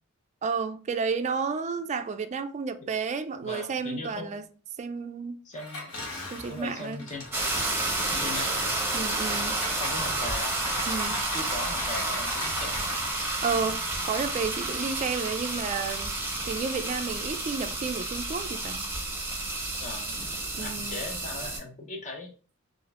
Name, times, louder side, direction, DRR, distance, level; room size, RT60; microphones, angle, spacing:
voice 1, 0.4-4.4 4.8-5.4 6.3-7.1 8.9-9.6 10.9-11.2 13.4-16.1 16.5-18.9 20.5-21.0, right 5 dB, 35° right, 0.3 m, -31 dB
voice 2, 3.4-4.4 5.4-7.4 8.1-8.8 9.8-10.6 11.3-13.0 19.8-22.3, left 2 dB, 35° left, 0.7 m, -39 dB
Engine, 5.5-8.3 9.1-13.2, left 2 dB, 80° left, 1.0 m, -41 dB
sound 1, 7.3-21.6, right 2 dB, 10° right, 0.8 m, -30 dB
5.0 x 2.5 x 2.4 m
head